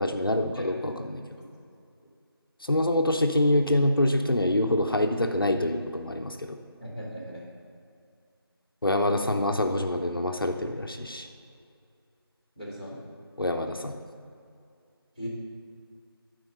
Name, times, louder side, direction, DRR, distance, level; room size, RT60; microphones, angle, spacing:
voice 1, 0.0-1.2 2.6-6.6 8.8-11.3 13.4-14.0, left 1 dB, 60° left, 4 dB, 0.6 m, -25 dB
voice 2, 0.5-0.8 1.4-1.5 6.8-7.4 12.6-13.0 15.1-15.3, equal, 20° right, -11 dB, 1.6 m, -38 dB
11.5 x 4.6 x 5.2 m, 2.4 s
figure-of-eight pair, 180°, 13 cm